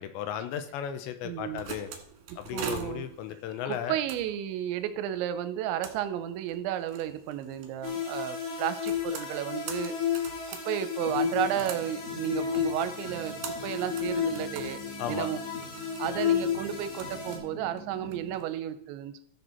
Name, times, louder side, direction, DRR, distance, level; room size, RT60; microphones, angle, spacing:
voice 1, 0.0-1.9 2.4-4.0 15.0-15.3, left 9 dB, 80° left, 9 dB, 2.9 m, -35 dB
sound 1, 1.2-18.5, right 7 dB, 60° right, 2.3 m, -46 dB
voice 2, 1.2-1.7 2.3-3.1 3.7-10.0 10.5-13.3 13.6-15.4 16.0-19.2, right 11 dB, 85° right, 11 dB, 2.9 m, -33 dB
sound 2, 7.8-17.4, left 7 dB, 60° left, 4.4 m, -32 dB
sound 3, 11.0-18.4, left 1 dB, 45° left, 3.0 m, -46 dB
14.5 x 6.7 x 4.3 m, 0.69 s
omnidirectional pair, 5.4 m